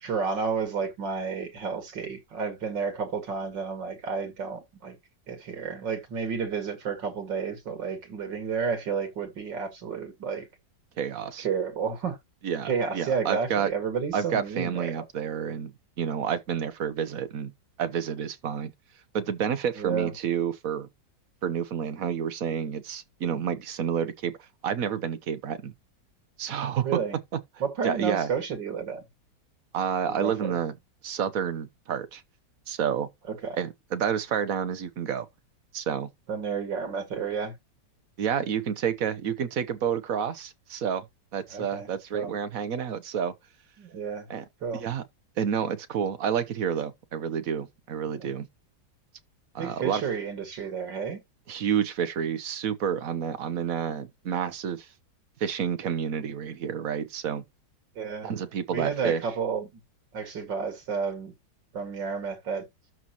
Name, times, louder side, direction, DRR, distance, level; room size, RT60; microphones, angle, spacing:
voice 1, 0.0-5.0 5.3-10.5 11.4-12.2 12.6-15.0 19.8-20.1 26.8-27.2 27.6-29.0 30.2-30.5 33.3-33.6 36.3-37.5 41.5-41.9 42.1-42.3 43.8-44.3 44.6-44.8 48.1-48.3 49.6-51.2 58.0-58.3 58.7-59.8 60.1-61.3 61.7-62.6, right 6 dB, 90° right, 2.8 m, -31 dB
voice 2, 11.0-11.5 12.4-13.7 14.1-17.5 17.8-18.7 19.1-20.9 21.4-24.4 24.6-25.7 26.4-27.0 27.8-28.3 29.7-30.7 31.0-32.2 32.7-33.1 33.5-35.3 35.7-36.1 38.2-41.1 41.3-43.3 44.3-44.4 44.7-45.0 45.4-48.5 49.5-50.0 51.5-54.9 55.4-57.4 58.2-59.2, right 8 dB, 55° right, 1.2 m, -29 dB
12.5 x 5.5 x 3.0 m
omnidirectional pair, 1.9 m